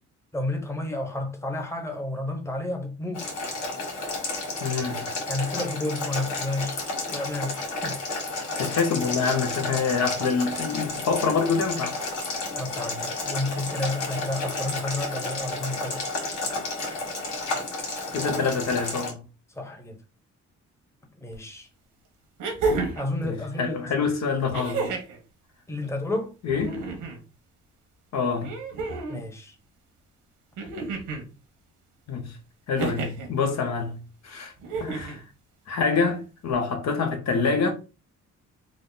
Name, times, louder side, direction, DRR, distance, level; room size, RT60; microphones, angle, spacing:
voice 1, 0.3-3.2 5.3-6.8 7.1-8.0 12.5-16.0 19.5-20.0 21.2-21.7 23.0-23.8 25.7-26.3 29.1-29.5, left 2 dB, 10° left, 0.9 m, -31 dB
Boiling, 3.1-19.1, left 2 dB, 80° left, 1.6 m, -31 dB
voice 2, 4.6-5.1 8.6-12.0 18.1-19.2 23.3-24.9 26.4-26.8 28.1-28.5 32.1-32.4 32.7-34.5 34.8-35.2 35.7-37.7, left 5 dB, 60° left, 0.9 m, -26 dB
sound 1, 21.3-21.4 22.4-23.1 24.5-25.2 26.5-27.2 28.4-29.2 30.6-31.3 32.8-33.3 34.6-35.2 36.5-36.6, right 3 dB, 90° right, 1.2 m, -30 dB
3.6 x 2.0 x 3.9 m
cardioid pair, 90°, 30 cm